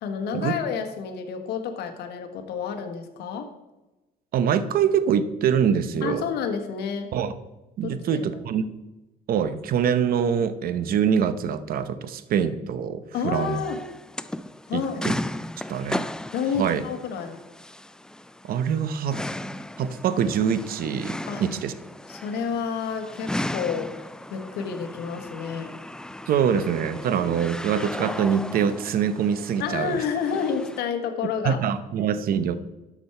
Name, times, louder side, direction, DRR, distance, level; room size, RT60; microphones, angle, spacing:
voice 1, 0.0-3.5 6.0-7.1 7.8-8.4 13.1-13.8 14.7-15.1 16.3-17.4 21.3-21.4 22.1-23.9 24.3-25.7 29.6-31.6, left 6 dB, 80° left, 5 dB, 1.5 m, -29 dB
voice 2, 4.3-6.3 7.1-7.3 7.8-8.7 9.3-13.6 14.7-15.1 15.7-16.0 16.6-16.8 18.4-19.2 19.8-21.7 26.3-30.0 31.4-32.6, right 8 dB, 60° right, 12 dB, 0.8 m, -24 dB
sound 1, 13.3-30.8, left 1 dB, 5° left, 0.3 m, -36 dB
12.5 x 6.1 x 4.5 m, 1.0 s
cardioid pair, 110°, 17 cm